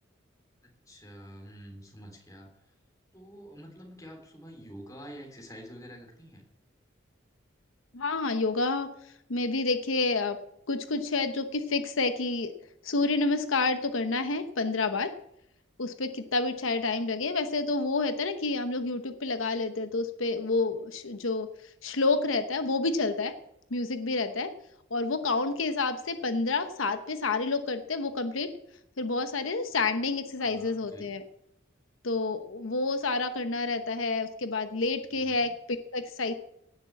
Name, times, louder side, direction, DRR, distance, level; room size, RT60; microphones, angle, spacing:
voice 1, 0.6-2.7 3.1-6.4 30.4-31.1 35.1-35.5, equal, 15° left, 2 dB, 3.3 m, -48 dB
voice 2, 7.9-8.9 9.3-10.4 10.7-12.5 12.8-15.1 15.8-21.5 21.8-23.3 23.7-24.5 24.9-28.5 29.0-31.2 32.0-36.3, left 3 dB, 80° left, 9 dB, 1.0 m, -29 dB
17.5 x 6.7 x 8.3 m, 0.77 s
head